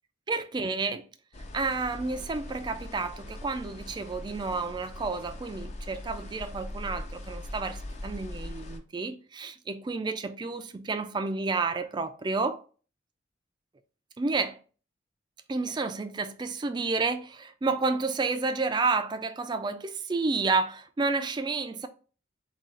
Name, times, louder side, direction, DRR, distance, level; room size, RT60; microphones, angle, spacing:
voice 1, 0.3-1.1 1.5-12.6 14.2-14.6 15.5-21.9, right 4 dB, 25° right, 0.3 m, -30 dB
sound 1, 1.3-8.8, left 1 dB, 35° left, 0.5 m, -41 dB
3.7 x 2.3 x 4.2 m
head